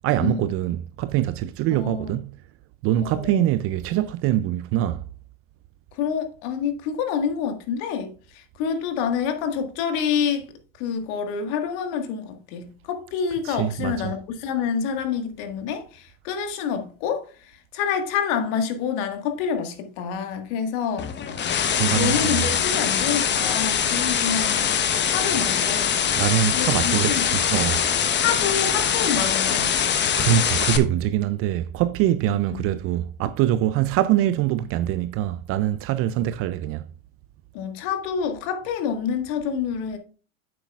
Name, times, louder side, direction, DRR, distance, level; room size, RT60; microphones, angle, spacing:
voice 1, 0.0-2.3 2.8-5.0 13.5-14.1 21.7-22.4 26.2-27.8 30.2-36.9, right 12 dB, 35° right, 0.4 m, -23 dB
voice 2, 1.7-2.1 3.0-3.4 5.9-10.5 10.8-21.1 21.4-26.0 26.5-27.3 28.2-30.0 32.3-32.6 37.5-40.0, left 7 dB, 55° left, 1.7 m, -28 dB
sound 1, 21.0-30.8, left 8 dB, 25° left, 1.0 m, -23 dB
9.2 x 7.6 x 2.4 m
hypercardioid pair, 100°, 42 cm